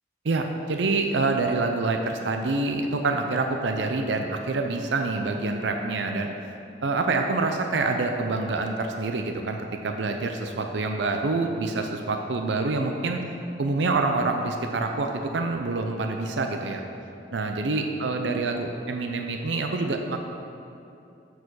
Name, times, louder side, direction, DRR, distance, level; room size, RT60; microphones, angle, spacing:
voice 1, 0.2-6.3 6.8-13.2 13.6-16.8 17.3-20.2, right 3 dB, 85° right, 4 dB, 0.5 m, -26 dB
8.3 x 4.7 x 6.4 m, 2.7 s
head